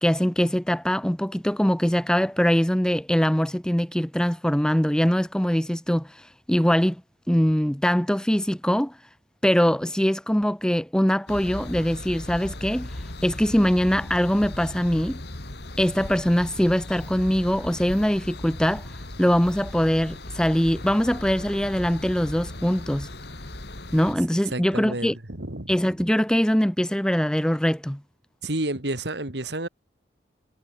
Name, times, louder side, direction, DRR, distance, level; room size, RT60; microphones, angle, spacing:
voice 1, 0.0-7.0 7.3-9.0 9.4-12.9 13.2-15.2 15.8-18.9 19.2-23.1 23.9-25.1 25.7-28.0, equal, 5° left, 0.6 m, -22 dB
sound 1, 11.3-24.1, left 1 dB, 65° left, 2.8 m, -37 dB
voice 2, 24.5-25.7 28.4-29.7, right 2 dB, 70° right, 2.7 m, -30 dB
head